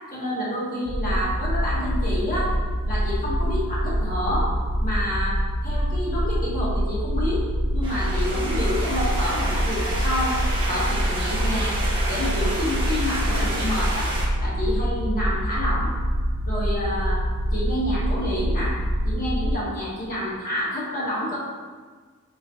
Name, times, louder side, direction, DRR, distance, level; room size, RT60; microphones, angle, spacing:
voice 1, 0.1-2.5 2.9-4.5 4.8-7.4 7.7-10.4 10.6-11.8 12.1-14.1 14.4-15.9 16.5-17.2 17.5-18.8 19.0-21.4, left 1 dB, 40° left, -7 dB, 1.3 m, -28 dB
sound 1, 0.9-19.5, equal, 65° right, 0.5 m, -25 dB
sound 2, 7.8-14.3, right 1 dB, 25° right, 0.9 m, -30 dB
4.8 x 3.1 x 2.5 m, 1.5 s
head